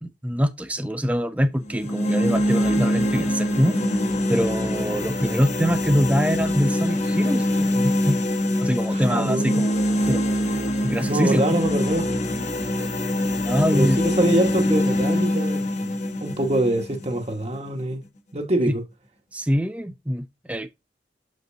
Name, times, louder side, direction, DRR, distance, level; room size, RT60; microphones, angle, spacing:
voice 1, 0.0-3.8 4.3-8.2 8.6-9.8 10.1-10.3 10.8-11.5 13.3-14.0 19.3-20.7, equal, 10° right, 0.6 m, -24 dB
sound 1, 1.7-17.7, left 1 dB, 40° left, 1.2 m, -24 dB
voice 2, 8.9-9.6 11.1-12.1 13.7-15.9 16.2-18.0 18.3-18.8, right 1 dB, 35° right, 1.4 m, -24 dB
7.6 x 5.3 x 2.7 m
head